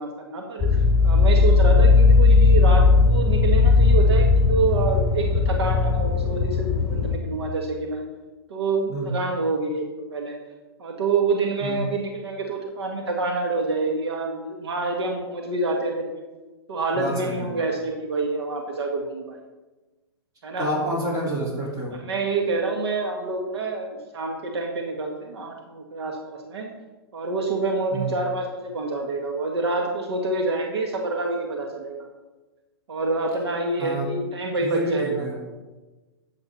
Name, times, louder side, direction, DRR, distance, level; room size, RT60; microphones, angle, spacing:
voice 1, 0.0-8.0 8.5-10.4 10.8-16.2 16.7-19.4 20.4-20.7 22.0-26.7 27.1-32.1 32.9-35.3, right 3 dB, 75° right, 1 dB, 1.8 m, -27 dB
sound 1, 0.6-7.2, left 4 dB, 5° left, 2.4 m, -17 dB
voice 2, 16.9-17.5 20.6-22.0 27.9-28.1 33.8-34.1 34.5-35.4, right 1 dB, 25° right, -3 dB, 4.4 m, -28 dB
13.5 x 8.0 x 4.1 m, 1.2 s
hypercardioid pair, 120°, 14 cm